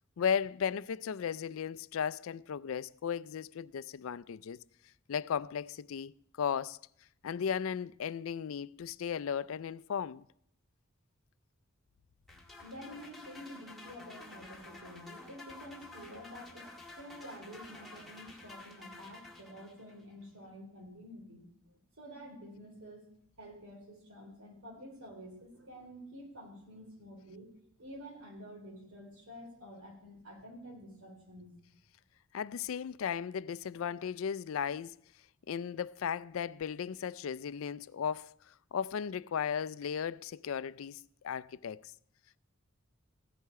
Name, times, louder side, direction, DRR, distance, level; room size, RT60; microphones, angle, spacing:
voice 1, 0.2-4.6 5.1-6.8 7.2-10.2 32.3-35.0 35.5-38.3 38.7-41.9, left 7 dB, 70° left, 0.4 m, -36 dB
sound 1, 12.3-20.0, left 2 dB, ahead, 1.8 m, -51 dB
voice 2, 12.6-21.4 22.0-23.0 23.4-27.5 27.8-31.5, equal, 80° right, 4.0 m, -49 dB
15.5 x 10.5 x 4.7 m
head